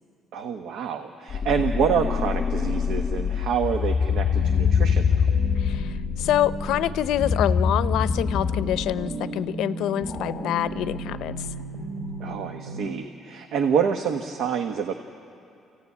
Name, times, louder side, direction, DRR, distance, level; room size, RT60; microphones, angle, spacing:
voice 1, 0.3-5.2 12.2-14.9, right 7 dB, 70° right, 5 dB, 1.1 m, -27 dB
sound 1, 1.3-9.1 10.0-11.8, left 6 dB, 30° left, 0.8 m, -25 dB
sound 2, 4.1-12.9, right 3 dB, 40° right, 2.9 m, -35 dB
voice 2, 5.6-11.5, left 12 dB, 75° left, 15 dB, 0.5 m, -26 dB
27.5 x 15.5 x 9.6 m, 2.5 s
cardioid pair, 165°, 0 cm